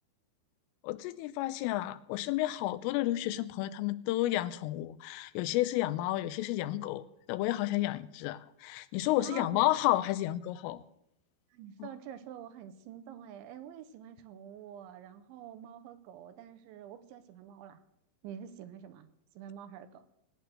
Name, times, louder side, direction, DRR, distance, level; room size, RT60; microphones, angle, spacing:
voice 1, 0.8-10.8 11.8-11.9, left 16 dB, 85° left, 14 dB, 3.3 m, -31 dB
voice 2, 9.2-9.6 11.5-17.8 18.2-19.1 19.3-20.1, right 9 dB, 75° right, 10 dB, 3.1 m, -47 dB
19.0 x 9.3 x 7.6 m, 0.76 s
omnidirectional pair, 5.9 m